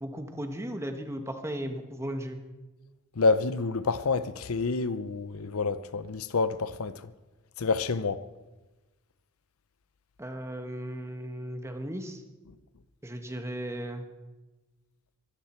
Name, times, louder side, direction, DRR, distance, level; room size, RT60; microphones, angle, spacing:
voice 1, 0.0-2.4 10.2-12.2 13.0-14.1, right 1 dB, 15° right, 1.3 m, -36 dB
voice 2, 3.2-7.1 7.6-8.2, left 4 dB, 75° left, 0.7 m, -28 dB
23.0 x 13.5 x 4.5 m
head